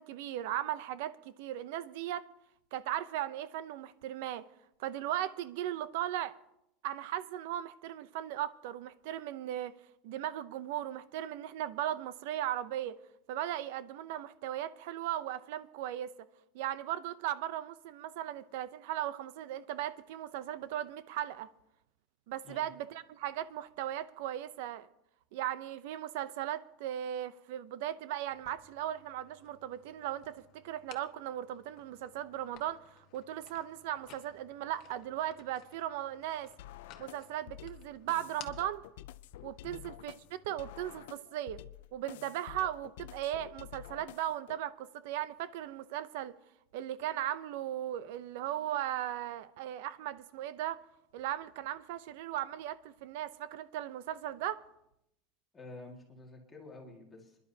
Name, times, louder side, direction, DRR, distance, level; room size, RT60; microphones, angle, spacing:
voice 1, 0.0-2.3 2.7-4.4 4.8-6.4 6.8-9.7 10.0-13.0 13.3-16.3 16.5-21.5 22.3-24.9 25.3-36.5 37.0-38.8 39.4-41.6 41.9-46.3 46.7-50.8 51.1-54.6, right 12 dB, 65° right, 0.6 m, -37 dB
sound 1, 28.3-40.8, left 9 dB, 40° left, 1.1 m, -58 dB
sound 2, 36.6-44.6, left 14 dB, 90° left, 0.4 m, -50 dB
voice 2, 55.5-57.4, left 2 dB, 10° left, 2.0 m, -50 dB
26.5 x 11.0 x 2.8 m
cardioid pair, 180°, 0 cm